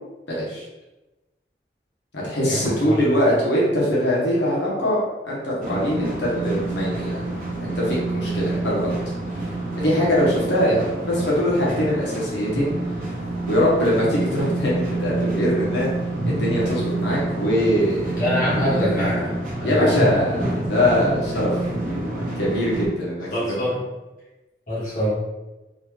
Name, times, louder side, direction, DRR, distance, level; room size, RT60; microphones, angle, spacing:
voice 1, 0.3-0.6 2.1-5.0 5.2-7.1 7.6-9.0 9.8-12.7 13.5-15.9 16.3-18.9 19.6-21.5 22.4-23.6, equal, 85° left, -5 dB, 1.0 m, -22 dB
voice 2, 2.5-3.0 18.2-20.0 23.3-23.8 24.7-25.1, equal, 50° left, -9 dB, 1.5 m, -25 dB
sound 1, 5.6-22.9, right 2 dB, 50° right, 0.7 m, -27 dB
3.9 x 2.3 x 3.1 m, 1.0 s
head